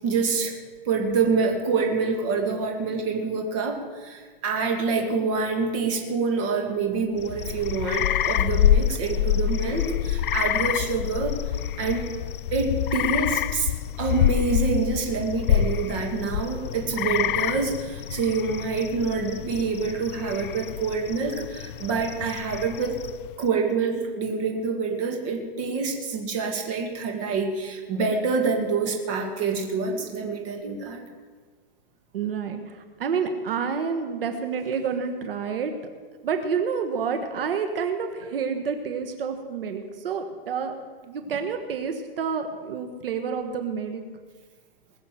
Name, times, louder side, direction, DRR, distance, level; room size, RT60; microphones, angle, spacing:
voice 1, 0.0-0.5 0.9-11.3 11.8-12.1 12.5-13.7 14.0-23.0 23.4-31.0, right 4 dB, 30° right, 2 dB, 2.1 m, -26 dB
sound 1, 7.2-23.4, left 11 dB, 65° left, 0.5 m, -27 dB
voice 2, 32.1-35.7 36.2-44.0, right 6 dB, 70° right, 6 dB, 1.5 m, -29 dB
20.5 x 7.3 x 7.6 m, 1.5 s
hypercardioid pair, 170°, 29 cm